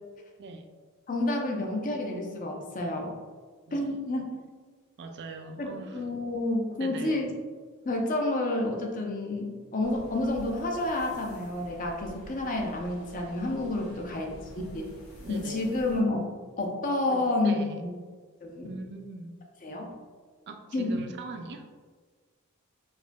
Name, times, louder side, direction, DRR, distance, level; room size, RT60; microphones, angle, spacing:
voice 1, 0.4-0.7 3.7-4.0 5.0-6.0 6.8-7.3 13.8-14.4 15.2-15.7 17.1-17.9 18.6-19.3 20.5-21.7, right 2 dB, 50° right, 5 dB, 0.4 m, -41 dB
voice 2, 1.1-3.1 3.7-4.2 5.6-7.3 7.8-14.3 14.7-14.9 15.3-16.3 16.6-17.9 18.4-18.7 19.6-19.9 20.7-21.0, left 2 dB, 40° left, 1 dB, 0.5 m, -29 dB
sound 1, 9.8-16.0, equal, 85° left, 1.0 m, -48 dB
4.7 x 2.6 x 2.2 m, 1.5 s
head